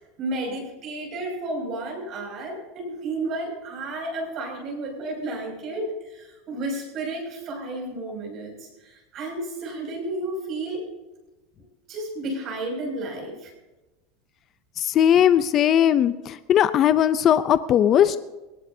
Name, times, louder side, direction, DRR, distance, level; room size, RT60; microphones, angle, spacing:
voice 1, 0.2-10.9 11.9-13.5, right 2 dB, 40° right, 0 dB, 6.4 m, -32 dB
voice 2, 14.8-18.2, left 10 dB, 35° left, 13 dB, 0.5 m, -19 dB
21.5 x 18.5 x 2.8 m, 1.1 s
supercardioid pair, 145°, 0 cm